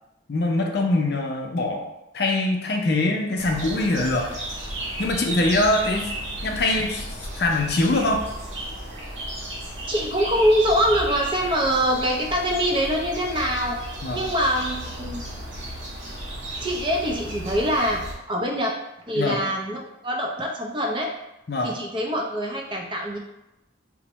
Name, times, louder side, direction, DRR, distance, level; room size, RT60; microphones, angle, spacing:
voice 1, 0.3-1.8 2.1-4.3 5.0-6.1 6.4-7.0 7.4-8.2 14.0-14.2 19.2-19.4 21.5-21.7, left 2 dB, 55° left, 2 dB, 0.5 m, -23 dB
sound 1, 3.4-18.2, right 1 dB, 90° right, 1.0 m, -34 dB
voice 2, 9.9-13.8 14.1-15.2 16.6-18.0 18.3-18.7 19.1-21.1 21.6-23.2, equal, 25° right, 0 dB, 0.5 m, -24 dB
4.4 x 2.1 x 2.9 m, 0.91 s
head